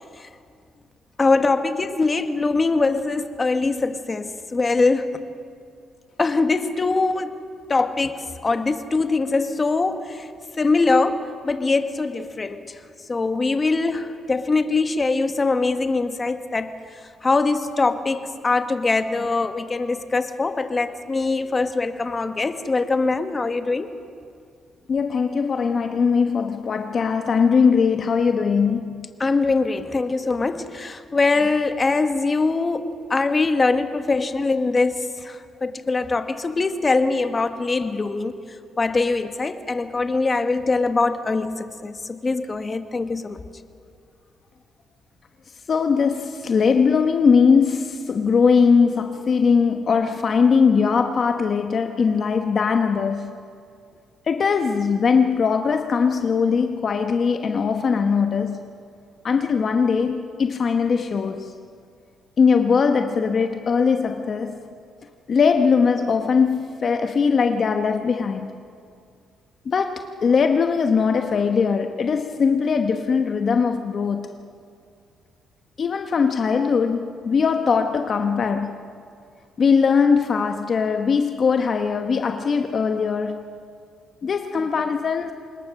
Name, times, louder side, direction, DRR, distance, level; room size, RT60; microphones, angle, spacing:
voice 1, 1.2-5.2 6.2-7.3 7.7-10.3 10.6-12.7 13.1-16.7 17.2-23.9 29.2-38.3 38.8-43.4, left 3 dB, 30° left, 1.4 m, -22 dB
voice 2, 24.9-29.1 45.7-53.3 54.3-58.7 59.2-61.5 62.4-64.6 65.3-68.5 69.6-74.4 75.8-78.8 79.6-83.5 84.2-85.3, left 5 dB, 50° left, 1.1 m, -20 dB
26.0 x 21.0 x 6.5 m
cardioid pair, 90°, 0 cm